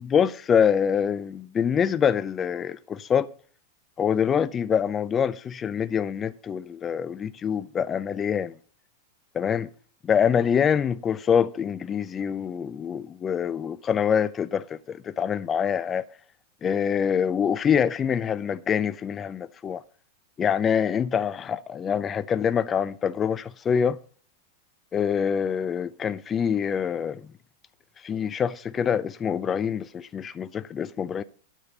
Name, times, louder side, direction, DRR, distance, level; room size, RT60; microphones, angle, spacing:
voice 1, 0.0-3.3 4.0-8.5 9.3-9.7 10.0-16.1 16.6-19.8 20.4-24.0 24.9-27.2 28.0-31.2, left 7 dB, 25° left, 0.5 m, -25 dB
10.0 x 7.3 x 6.6 m
figure-of-eight pair, 95°, 0 cm